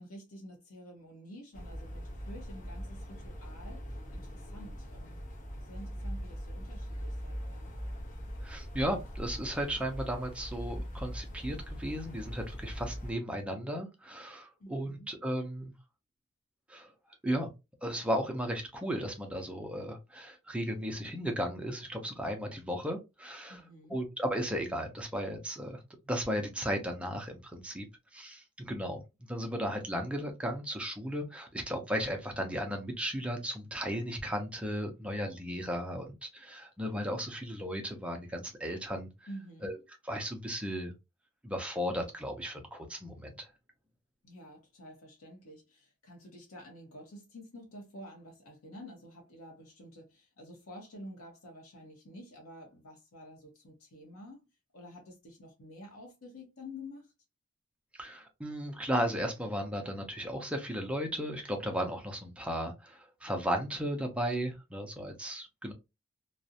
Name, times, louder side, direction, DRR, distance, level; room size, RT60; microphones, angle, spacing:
voice 1, 0.0-3.8 4.1-5.2 5.7-7.7 14.6-15.1 23.5-24.0 39.3-39.7 44.2-54.4 54.7-57.1, left 1 dB, 85° left, 0.8 m, -49 dB
sound 1, 1.5-13.1, equal, 40° left, 0.6 m, -41 dB
voice 2, 8.4-15.7 16.7-16.9 17.2-17.5 17.8-23.6 23.9-27.9 28.1-29.0 29.3-39.1 39.6-39.8 40.0-40.9 41.4-43.5 57.9-65.7, equal, 5° right, 0.5 m, -35 dB
2.4 x 2.0 x 2.6 m
head